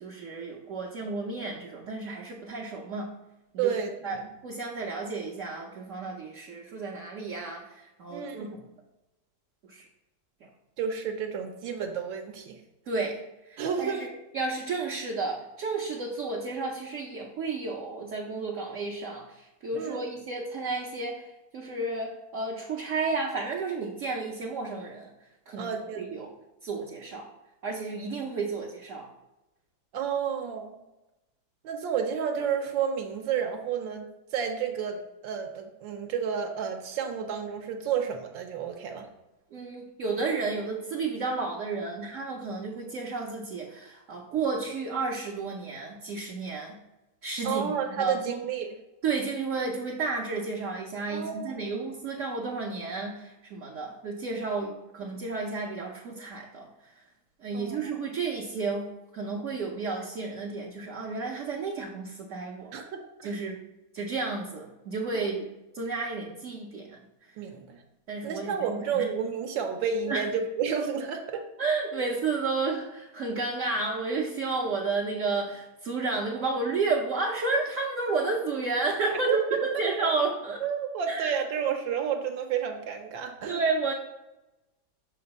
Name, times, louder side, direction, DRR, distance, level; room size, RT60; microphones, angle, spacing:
voice 1, 0.0-3.1 3.5-3.7 4.0-8.5 9.6-9.8 10.4-10.5 12.9-14.1 14.3-25.1 25.5-26.3 26.6-27.3 27.6-29.1 39.5-46.8 47.2-48.4 49.0-56.7 57.4-62.7 63.2-63.6 63.9-65.5 65.7-67.0 68.1-69.1 70.1-70.3 71.3-80.6 81.1-81.3 83.5-83.9, right 3 dB, 60° right, -2 dB, 0.8 m, -32 dB
voice 2, 3.6-4.3 8.1-8.6 10.8-12.6 13.6-14.1 19.7-20.0 25.6-26.2 29.9-30.8 31.6-34.1 34.3-39.1 47.4-48.7 51.1-51.8 54.6-54.7 57.5-57.8 62.7-63.0 67.4-67.8 68.2-71.4 71.9-72.1 79.3-80.1 80.6-83.6, right 7 dB, 75° right, 4 dB, 1.3 m, -31 dB
5.9 x 3.8 x 5.2 m, 0.97 s
omnidirectional pair, 2.1 m